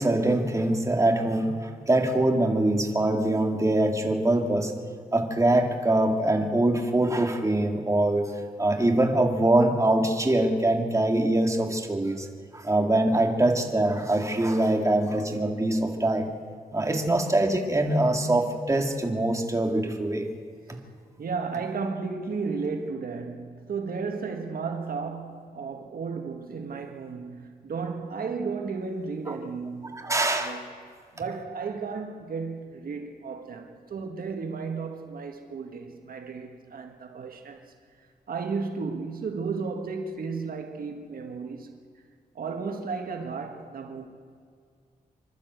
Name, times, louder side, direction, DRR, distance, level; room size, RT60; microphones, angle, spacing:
voice 1, 0.0-4.7 5.1-8.2 8.6-12.3 12.5-16.3 16.7-20.3 20.7-20.8 29.3-29.4 29.9-30.6, right 1 dB, 20° right, 2.2 m, -23 dB
voice 2, 21.2-30.6 31.1-37.7 38.0-41.7 42.4-44.0, right 4 dB, 80° right, 1.7 m, -34 dB
26.0 x 12.5 x 8.1 m
wide cardioid pair, 95°, 15 cm